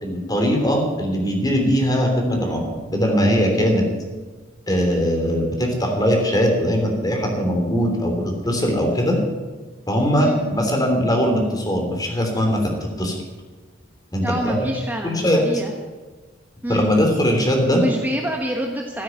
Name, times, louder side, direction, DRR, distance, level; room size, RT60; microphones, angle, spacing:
voice 1, 0.0-3.8 4.7-9.2 9.9-13.1 14.1-14.7 15.0-15.4 16.7-17.8, equal, 20° left, 2 dB, 3.3 m, -20 dB
voice 2, 14.2-15.7 16.6-16.9 17.7-19.0, right 1 dB, 10° right, 1 dB, 1.1 m, -26 dB
13.5 x 9.6 x 9.4 m, 1.3 s
head